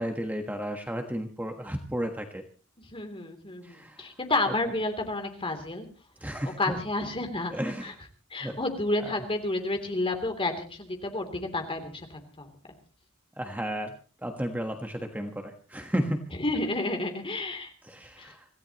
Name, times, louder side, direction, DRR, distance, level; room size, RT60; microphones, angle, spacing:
voice 1, 0.0-2.4 3.6-4.1 6.2-6.8 7.5-7.9 8.4-8.6 9.0-9.1 13.4-13.9 14.2-16.3 17.8-18.5, equal, 10° right, 4 dB, 1.4 m, -33 dB
voice 2, 2.8-5.9 6.6-7.5 7.8-7.9 8.3-12.5 16.4-17.7 18.2-18.3, left 2 dB, 25° left, 5 dB, 3.2 m, -30 dB
26.0 x 16.0 x 3.0 m, 0.37 s
head